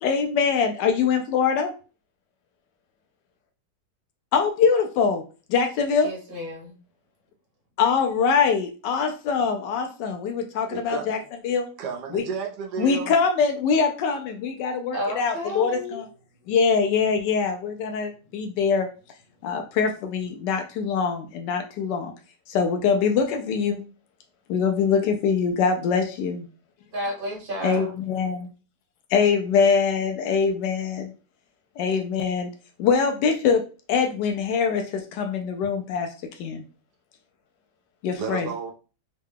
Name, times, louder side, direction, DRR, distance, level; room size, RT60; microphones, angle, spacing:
voice 1, 0.0-1.7 4.3-5.2 5.5-6.1 7.8-11.2 11.4-11.7 12.1-12.2 12.8-16.1 16.5-18.9 19.4-22.1 22.5-23.8 24.5-26.5 27.6-28.5 29.1-31.1 31.8-32.5 32.8-36.1 36.4-36.6 38.0-38.5, left 6 dB, 85° left, 5 dB, 1.2 m, -23 dB
voice 2, 6.0-6.7 14.9-16.0 26.9-27.9, equal, 35° right, -1 dB, 1.2 m, -31 dB
voice 3, 10.7-11.1 11.8-13.1 38.2-38.7, right 6 dB, 75° right, 2 dB, 1.3 m, -32 dB
3.7 x 2.2 x 3.5 m, 0.35 s
omnidirectional pair, 1.8 m